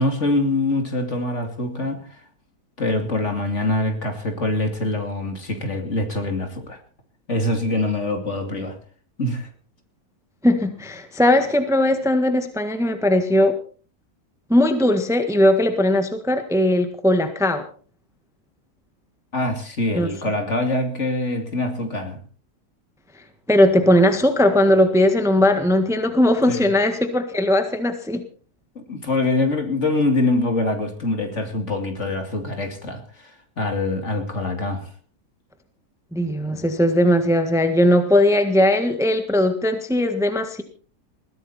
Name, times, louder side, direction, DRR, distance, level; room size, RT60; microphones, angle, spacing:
voice 1, 0.0-2.2 2.8-6.8 7.3-8.8 9.2-9.5 19.3-22.2 26.5-26.6 28.7-33.3 33.6-34.9 36.5-36.6, left 2 dB, 45° left, 5 dB, 3.0 m, -24 dB
voice 2, 10.4-13.6 14.5-17.6 19.9-20.1 23.5-28.2 36.1-40.6, left 1 dB, ahead, 8 dB, 1.4 m, -19 dB
21.0 x 15.5 x 4.3 m, 0.41 s
omnidirectional pair, 1.7 m